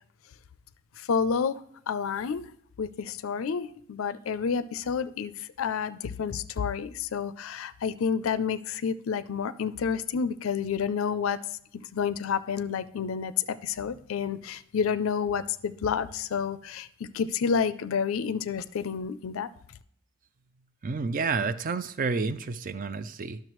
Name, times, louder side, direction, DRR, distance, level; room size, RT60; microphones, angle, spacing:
voice 1, 1.0-2.5 2.8-11.4 11.7-19.5, left 6 dB, 90° left, 15 dB, 0.4 m, -29 dB
voice 2, 20.8-23.4, right 4 dB, 40° right, 13 dB, 0.4 m, -30 dB
10.5 x 6.6 x 3.1 m, 0.69 s
head